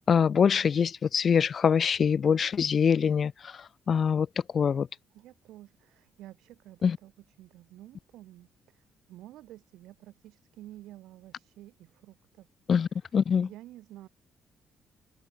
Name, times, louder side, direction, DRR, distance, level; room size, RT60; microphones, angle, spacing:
voice 1, 0.0-4.3 4.5-4.9 6.8-7.0 12.7-13.5, left 7 dB, 50° left, 1.8 m, -24 dB
voice 2, 5.1-7.1 7.4-8.8 9.1-12.5 13.3-14.1, right 15 dB, 90° right, 6.0 m, -50 dB
cardioid pair, 90°, 0 cm